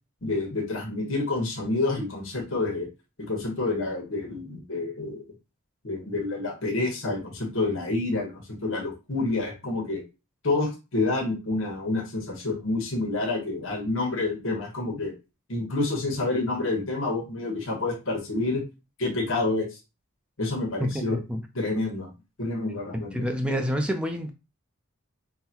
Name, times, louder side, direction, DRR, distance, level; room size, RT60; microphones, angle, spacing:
voice 1, 0.2-2.9 3.2-5.2 5.8-10.0 10.4-15.1 15.5-18.6 19.0-19.7 20.4-21.2 21.5-22.1 22.4-23.6, left 2 dB, 65° left, 1.2 m, -28 dB
voice 2, 20.8-21.4 22.9-24.3, equal, 5° right, 0.5 m, -28 dB
5.6 x 2.2 x 2.9 m
head